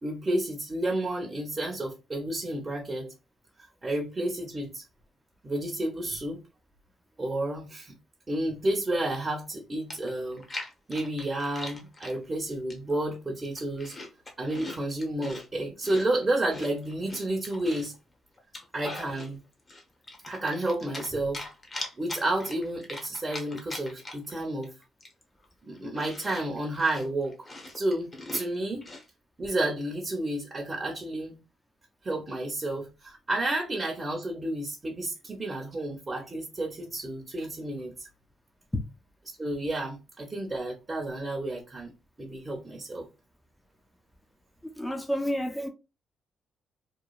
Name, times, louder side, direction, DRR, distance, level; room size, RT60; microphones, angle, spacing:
voice 1, 0.0-3.1 3.8-4.8 5.4-6.4 7.2-7.9 8.3-10.4 10.9-14.0 14.4-17.9 18.7-19.4 20.3-21.4 22.0-24.7 25.6-27.3 27.7-28.8 29.4-31.3 32.0-38.1 39.4-41.9 42.2-43.1, right 1 dB, 25° right, 0.7 m, -31 dB
Chewing mastication, 9.5-9.6 9.9-12.2 12.7-13.1 13.4-15.5 15.8-18.0 18.4-19.3 19.7-21.1 21.3-24.3 24.6-24.7 25.0-29.1, left 2 dB, 30° left, 0.8 m, -41 dB
voice 2, 44.6-45.7, equal, 10° left, 0.5 m, -30 dB
3.0 x 2.1 x 2.3 m
cardioid pair, 90°, 0 cm